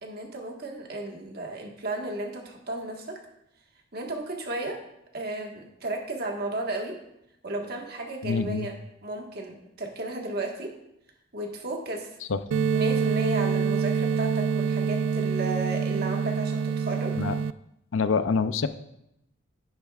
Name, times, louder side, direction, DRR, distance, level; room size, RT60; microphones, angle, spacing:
voice 1, 0.0-3.2 3.9-4.8 5.1-7.0 7.4-8.7 9.0-10.7 11.3-12.1 12.7-17.2, right 2 dB, 50° right, 1 dB, 1.5 m, -34 dB
voice 2, 8.2-8.7 12.3-12.4 17.2-17.4 17.9-18.7, left 5 dB, 85° left, 11 dB, 0.5 m, -25 dB
sound 1, 12.5-17.5, right 6 dB, 85° right, 0.3 m, -26 dB
10.5 x 10.5 x 2.4 m, 0.82 s
head